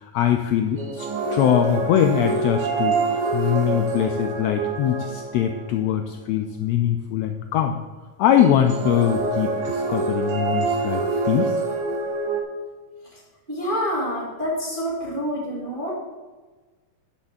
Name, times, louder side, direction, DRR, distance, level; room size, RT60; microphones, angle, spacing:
voice 1, 0.0-7.8 8.2-11.6, left 10 dB, 80° left, 5 dB, 1.6 m, -22 dB
sound 1, 0.8-5.8 8.4-12.4, right 3 dB, 60° right, 1.1 m, -26 dB
voice 2, 13.5-15.9, equal, 25° right, -5 dB, 1.2 m, -27 dB
9.5 x 4.5 x 7.1 m, 1.3 s
omnidirectional pair, 3.5 m